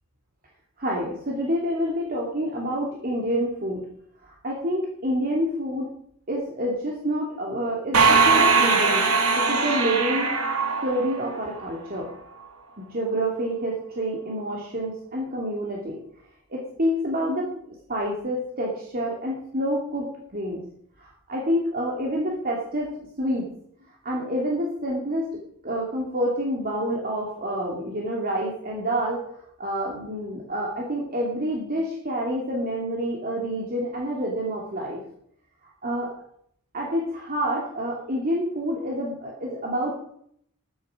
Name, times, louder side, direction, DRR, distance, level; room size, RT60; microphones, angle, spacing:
voice 1, 0.8-3.8 4.3-5.9 6.3-10.4 10.8-12.1 12.8-16.0 16.5-17.5 17.9-20.6 21.0-23.5 24.0-25.3 25.6-29.2 29.6-35.0 35.8-36.1 36.7-39.9, equal, 40° right, -2 dB, 2.8 m, -28 dB
sound 1, 7.9-11.6, right 4 dB, 80° right, 2.8 m, -20 dB
14.5 x 11.5 x 5.0 m, 0.68 s
head